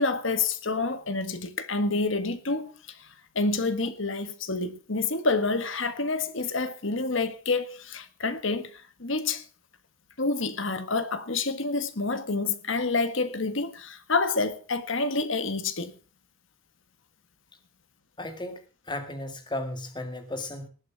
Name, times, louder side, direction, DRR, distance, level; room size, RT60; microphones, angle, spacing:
voice 1, 0.0-3.0 3.3-9.4 10.2-15.9, left 3 dB, 60° left, 1.5 m, -28 dB
voice 2, 18.2-20.7, left 1 dB, 20° left, 2.0 m, -35 dB
19.0 x 8.0 x 6.1 m
head